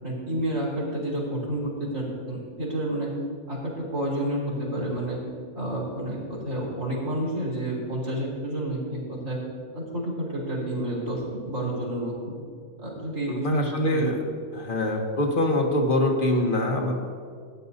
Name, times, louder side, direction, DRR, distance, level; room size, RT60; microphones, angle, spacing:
voice 1, 0.0-3.1 3.5-5.2 5.6-9.4 9.7-12.3 12.8-13.6 13.9-14.1, right 1 dB, 65° right, -4 dB, 3.8 m, -30 dB
voice 2, 13.3-14.2 14.5-17.0, left 1 dB, 40° left, 2 dB, 1.3 m, -24 dB
17.0 x 10.0 x 2.7 m, 2.1 s
omnidirectional pair, 1.5 m